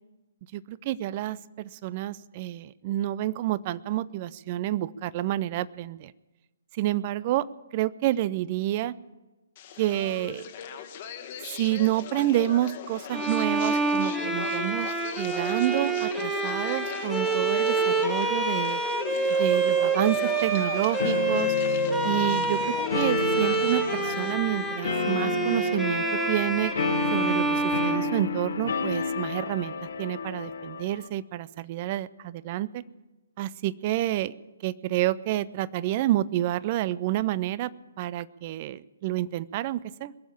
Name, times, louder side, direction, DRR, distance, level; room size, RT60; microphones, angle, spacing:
voice 1, 0.5-6.1 6.7-7.5 7.7-8.9 9.8-10.4 11.5-18.8 19.4-21.5 22.0-26.7 27.1-32.8 33.4-34.3 34.6-37.7 38.0-40.1, right 14 dB, 35° right, 19 dB, 0.4 m, -29 dB
sound 1, 9.6-24.3, left 8 dB, 35° left, 1.3 m, -38 dB
Bowed string instrument, 13.1-28.9, right 3 dB, 5° right, 1.2 m, -27 dB
sound 2, 21.0-31.1, left 5 dB, 60° left, 1.2 m, -31 dB
21.5 x 7.2 x 8.7 m, 1.1 s
figure-of-eight pair, 130°, 0 cm